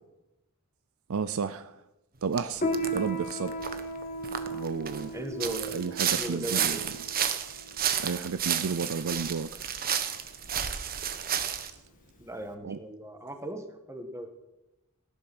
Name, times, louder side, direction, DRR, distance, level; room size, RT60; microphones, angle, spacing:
voice 1, 1.1-1.8 2.2-3.6 4.5-5.1 5.7-6.8 8.0-9.7 12.6-12.8, right 5 dB, 65° right, 0.5 m, -32 dB
sound 1, 2.4-2.5 2.7-3.0 3.3-5.0 5.4-11.7, right 8 dB, 40° right, 1.2 m, -31 dB
Piano, 2.6-12.5, right 1 dB, 35° left, 1.6 m, -36 dB
voice 2, 5.1-6.8 12.2-14.3, right 1 dB, 15° right, 1.5 m, -38 dB
17.0 x 11.0 x 6.1 m
head